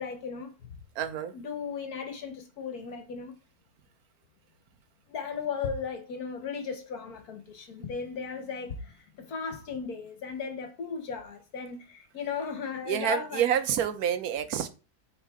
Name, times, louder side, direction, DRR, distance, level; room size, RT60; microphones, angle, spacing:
voice 1, 0.0-0.8 1.3-3.3 5.1-13.4, left 6 dB, 75° left, 1.7 m, -36 dB
voice 2, 0.9-1.3 12.9-14.7, right 9 dB, 75° right, 1.2 m, -28 dB
7.3 x 3.7 x 3.6 m
omnidirectional pair, 1.6 m